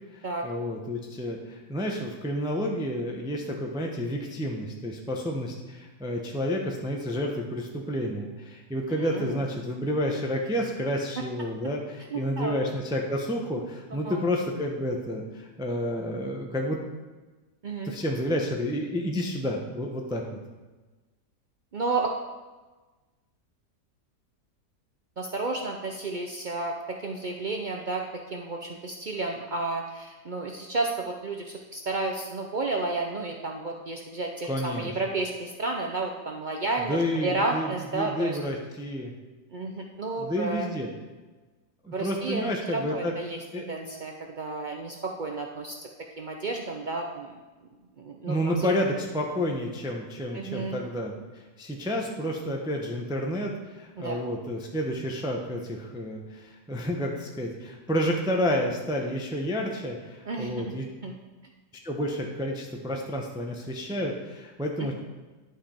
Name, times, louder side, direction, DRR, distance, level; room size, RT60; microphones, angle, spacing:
voice 1, 0.1-16.8 17.8-20.2 34.5-34.9 36.9-37.7 37.9-39.1 40.2-40.9 41.8-43.2 43.5-43.6 48.3-51.1 51.6-60.9 61.8-64.9, equal, 5° right, 1 dB, 0.5 m, -30 dB
voice 2, 12.1-12.5 13.9-14.2 17.6-17.9 21.7-22.1 25.2-38.4 39.5-40.7 41.9-45.8 46.2-47.3 48.0-48.7 50.3-50.8 54.0-54.2 60.2-60.7 61.0-61.1 64.8-64.9, right 3 dB, 85° right, 1 dB, 0.4 m, -32 dB
11.5 x 5.2 x 4.4 m, 1.2 s
omnidirectional pair, 1.8 m